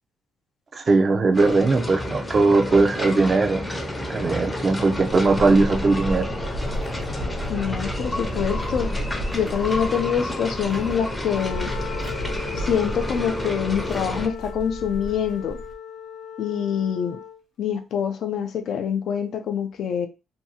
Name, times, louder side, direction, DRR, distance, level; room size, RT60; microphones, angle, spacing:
voice 1, 0.7-3.7 4.1-6.3, right 3 dB, 40° right, 0.4 m, -19 dB
sound 1, 1.3-14.3, left 1 dB, 15° left, 0.5 m, -30 dB
sound 2, 4.9-15.7, equal, 75° right, 0.7 m, -33 dB
voice 2, 7.5-8.9 9.3-11.7 12.6-15.6 16.4-17.2 17.6-20.1, left 8 dB, 70° left, 0.4 m, -25 dB
Wind instrument woodwind instrument, 11.1-17.4, left 7 dB, 90° left, 0.8 m, -38 dB
2.6 x 2.3 x 2.7 m
cardioid pair, 90°, 0 cm